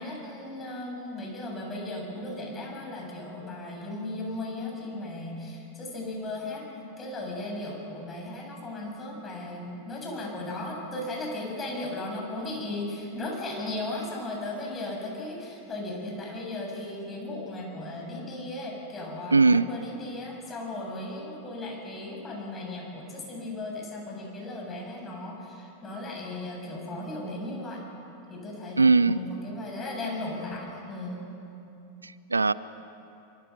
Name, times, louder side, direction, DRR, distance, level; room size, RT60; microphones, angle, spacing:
voice 1, 0.0-27.8 28.3-31.2, left 2 dB, 20° left, 0 dB, 7.5 m, -36 dB
voice 2, 19.3-19.7 28.8-29.2 32.0-32.5, right 3 dB, 80° right, 18 dB, 0.5 m, -20 dB
25.5 x 24.0 x 6.2 m, 2.8 s
figure-of-eight pair, 90°, 0 cm